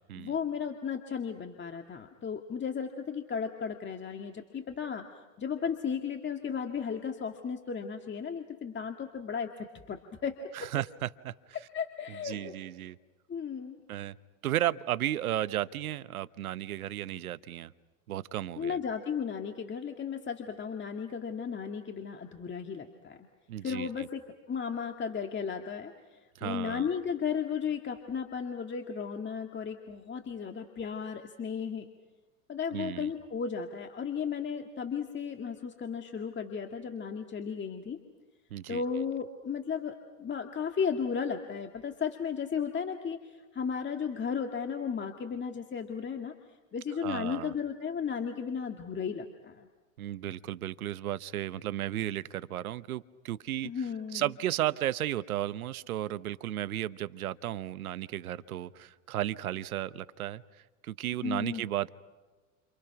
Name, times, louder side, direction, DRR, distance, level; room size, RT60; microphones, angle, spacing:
voice 1, 0.2-5.1 5.4-10.7 11.5-12.5 13.3-13.8 18.6-23.3 23.6-24.2 24.5-31.9 32.5-38.0 38.7-46.3 46.7-49.7 53.6-54.3 61.2-61.6, left 6 dB, 25° left, 4 dB, 2.1 m, -35 dB
voice 2, 10.5-11.3 12.2-13.0 13.9-14.2 14.4-17.7 18.1-18.8 23.5-24.1 26.4-26.9 32.7-33.1 38.5-38.8 47.0-47.5 50.0-53.7 54.1-60.4 60.8-61.9, right 13 dB, 85° right, 16 dB, 1.1 m, -34 dB
30.0 x 28.5 x 6.0 m, 1.2 s
hypercardioid pair, 90°, 42 cm